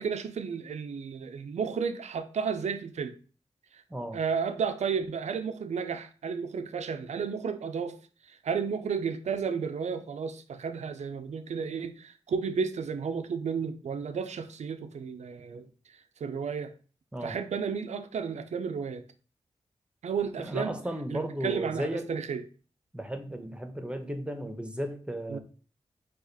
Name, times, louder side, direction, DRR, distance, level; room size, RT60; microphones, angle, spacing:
voice 1, 0.0-3.2 3.7-3.8 4.1-8.0 8.3-15.7 16.2-16.7 17.2-19.0 20.0-20.8 21.1-22.4 25.3-25.4, right 6 dB, 80° right, 9 dB, 0.4 m, -32 dB
voice 2, 20.4-22.1 22.9-25.4, right 1 dB, 10° right, 6 dB, 0.8 m, -35 dB
4.9 x 2.4 x 4.0 m, 0.38 s
cardioid pair, 55°, 12 cm